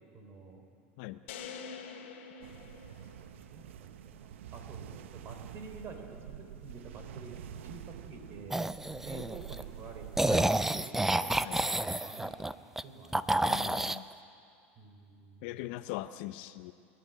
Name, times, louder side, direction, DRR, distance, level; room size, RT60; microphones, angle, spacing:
voice 1, 0.1-0.7 3.3-10.3 10.6-11.7 12.0-13.3 14.8-15.7, right 4 dB, 40° right, 5 dB, 3.6 m, -49 dB
sound 1, 1.3-3.6, left 6 dB, 85° left, 2.2 m, -45 dB
sound 2, 2.4-10.4, right 9 dB, 85° right, 0.8 m, -47 dB
sound 3, 8.5-9.6 10.2-12.8 13.1-14.0, right 1 dB, 5° right, 0.5 m, -29 dB
voice 2, 13.4-14.1 15.4-16.7, left 16 dB, 65° left, 12 dB, 0.7 m, -40 dB
29.0 x 11.0 x 9.3 m, 2.4 s
supercardioid pair, 120°, 6 cm